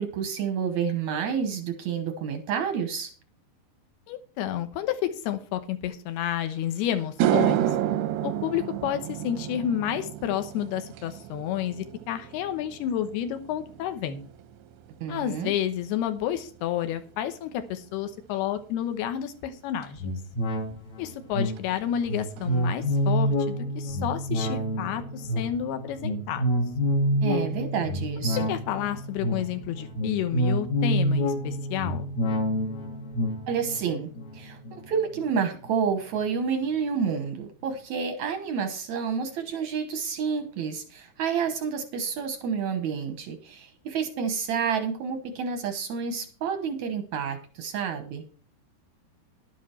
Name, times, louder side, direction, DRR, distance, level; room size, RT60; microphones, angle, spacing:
voice 1, 0.0-3.1 15.0-15.5 27.2-28.4 33.5-48.2, right 6 dB, 75° right, 7 dB, 1.7 m, -29 dB
voice 2, 4.1-7.7 8.2-14.2 15.1-20.1 21.0-26.5 28.5-32.1, left 10 dB, 75° left, 9 dB, 2.9 m, -30 dB
sound 1, 6.5-6.6 7.0-15.5 15.8-16.2 19.8-19.9 21.6-21.7 22.0-22.1 22.4-22.9, right 11 dB, 90° right, 3.0 m, -30 dB
sound 2, 20.0-35.7 36.1-36.2, equal, 50° left, 2.5 m, -28 dB
11.5 x 10.0 x 4.4 m, 0.40 s
omnidirectional pair, 4.8 m